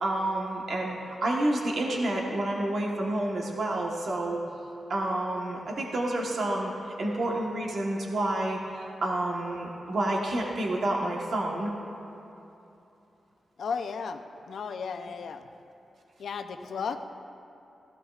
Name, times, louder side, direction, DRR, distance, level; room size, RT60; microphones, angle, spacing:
voice 1, 0.0-4.4 4.9-6.7 7.0-11.7, right 1 dB, 60° right, -1 dB, 1.2 m, -29 dB
voice 2, 13.6-14.2 14.5-15.4 16.2-17.0, left 5 dB, 70° left, 7 dB, 0.6 m, -34 dB
15.5 x 15.0 x 2.4 m, 2.9 s
wide cardioid pair, 145°, 0 cm